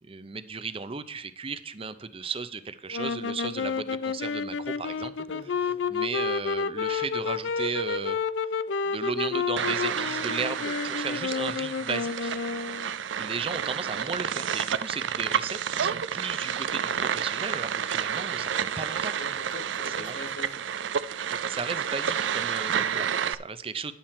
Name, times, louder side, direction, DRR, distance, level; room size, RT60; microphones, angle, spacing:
voice 1, 0.0-5.1 5.9-8.2 8.9-12.4 13.2-19.1 19.9-20.2 21.5-23.9, right 5 dB, 30° right, 12 dB, 0.6 m, -35 dB
sound 1, 2.9-12.9, left 5 dB, 85° left, 0.5 m, -30 dB
voice 2, 5.3-5.8 19.2-20.6, left 2 dB, 70° left, 8 dB, 1.4 m, -42 dB
sound 2, 9.6-23.3, right 8 dB, 85° right, 0.5 m, -30 dB
10.5 x 7.4 x 4.3 m, 0.69 s
head